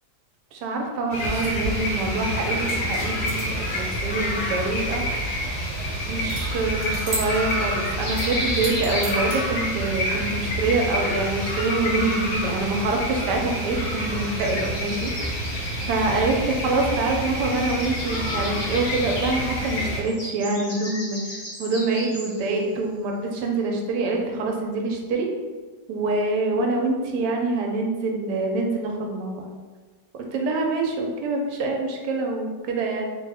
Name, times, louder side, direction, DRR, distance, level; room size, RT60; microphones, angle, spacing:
voice 1, 0.5-5.4 6.0-15.1 15.9-25.3 25.9-29.5 30.3-33.0, right 3 dB, 85° right, 1 dB, 1.2 m, -25 dB
sound 1, 1.1-20.0, equal, 55° left, 0.8 m, -28 dB
sound 2, 3.3-3.7 6.3-6.4 6.8-7.7 8.1-9.4, right 1 dB, 55° right, 1.0 m, -34 dB
sound 3, 8.0-9.7 11.1-12.2 14.1-17.1 17.4-22.5, left 1 dB, 20° left, 0.8 m, -36 dB
3.0 x 2.1 x 3.3 m, 1.3 s
omnidirectional pair, 1.7 m